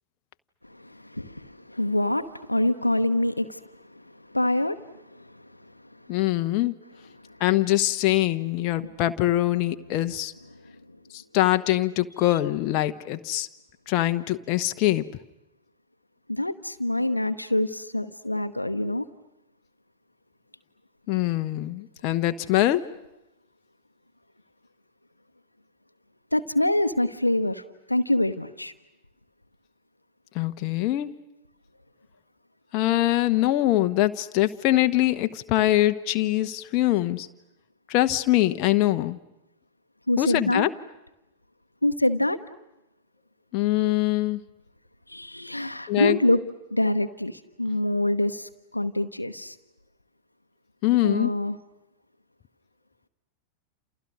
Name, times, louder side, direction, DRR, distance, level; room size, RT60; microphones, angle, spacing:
voice 1, 0.6-4.8 5.1-5.7 7.3-7.4 8.8-8.9 16.3-19.1 26.3-28.7 40.1-40.7 41.8-42.4 45.1-46.4 46.7-49.6 51.0-51.6, left 1 dB, 85° left, 9 dB, 1.0 m, -26 dB
voice 2, 6.1-6.7 7.4-10.3 11.1-13.5 13.9-15.1 21.1-22.8 30.3-31.1 32.7-37.3 37.9-39.2 40.2-40.7 43.5-44.4 45.9-46.2 50.8-51.3, left 15 dB, 40° left, 8 dB, 1.1 m, -23 dB
30.0 x 28.5 x 6.4 m, 0.90 s
figure-of-eight pair, 90°, 0 cm